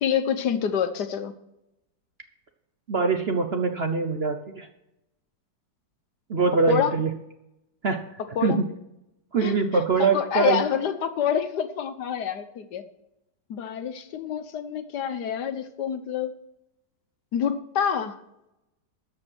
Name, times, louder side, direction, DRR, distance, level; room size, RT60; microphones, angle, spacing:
voice 1, 0.0-1.3 6.7-6.9 8.2-8.6 9.4-12.8 13.5-16.3 17.3-18.2, left 8 dB, 70° left, 10 dB, 1.5 m, -27 dB
voice 2, 2.9-4.7 6.3-7.1 7.8-8.0 8.4-8.7 9.3-10.6, right 4 dB, 50° right, 6 dB, 0.8 m, -23 dB
13.5 x 5.3 x 7.7 m, 0.86 s
omnidirectional pair, 1.9 m